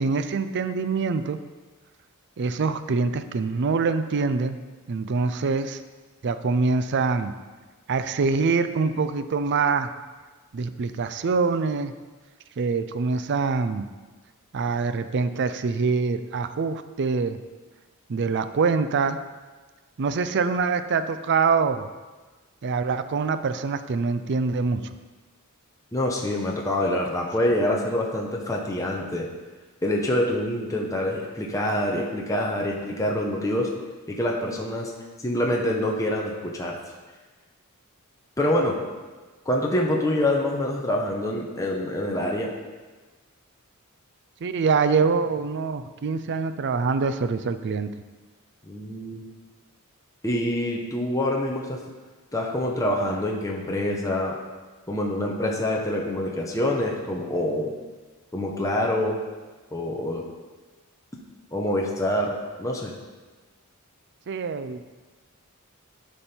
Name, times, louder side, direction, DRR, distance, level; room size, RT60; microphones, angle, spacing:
voice 1, 0.0-1.4 2.4-4.6 4.9-5.8 6.2-7.3 7.9-9.9 10.5-11.9 12.6-13.9 14.5-17.4 18.1-19.2 20.0-21.9 22.6-24.8 44.4-47.9 64.3-64.9, right 4 dB, 55° right, 11 dB, 0.4 m, -24 dB
voice 2, 25.9-29.3 29.8-33.7 34.1-34.9 35.2-36.8 38.4-38.7 39.5-42.5 48.6-49.3 50.2-51.8 52.3-54.4 54.9-57.7 58.3-59.2 59.7-60.2 61.5-62.9, left 1 dB, 15° left, -1 dB, 0.9 m, -26 dB
13.0 x 5.3 x 4.4 m, 1.3 s
head